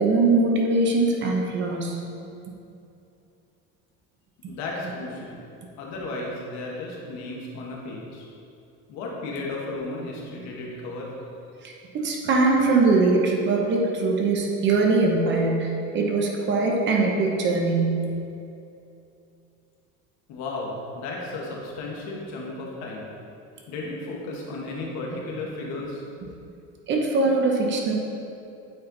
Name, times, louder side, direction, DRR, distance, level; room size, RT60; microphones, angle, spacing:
voice 1, 0.0-2.0 11.6-18.0 26.9-27.9, right 3 dB, 35° right, 0 dB, 0.9 m, -22 dB
voice 2, 4.5-5.4 5.8-8.3 8.9-11.1 20.3-23.1 23.7-26.0, left 2 dB, 60° left, -2 dB, 1.5 m, -34 dB
8.8 x 4.4 x 4.0 m, 2.7 s
cardioid pair, 160°, 31 cm